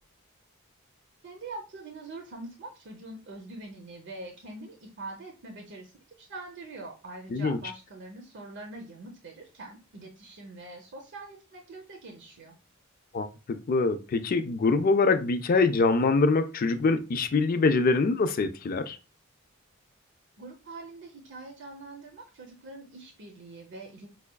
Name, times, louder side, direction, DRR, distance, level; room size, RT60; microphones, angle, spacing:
voice 1, 1.2-5.9 6.2-12.6 20.4-24.1, right 2 dB, 55° right, 0.7 m, -43 dB
voice 2, 13.1-19.0, left 3 dB, 40° left, 0.4 m, -24 dB
5.5 x 2.3 x 2.2 m
head